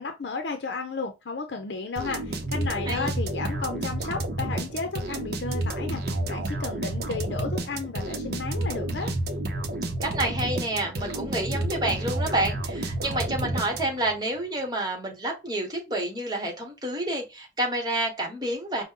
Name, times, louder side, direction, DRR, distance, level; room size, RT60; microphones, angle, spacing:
voice 1, 0.0-9.1, left 4 dB, 75° left, 0.6 m, -33 dB
sound 1, 2.0-14.2, right 1 dB, 55° right, 0.7 m, -30 dB
voice 2, 10.0-18.8, right 1 dB, 20° right, 1.2 m, -29 dB
5.1 x 2.1 x 3.7 m
head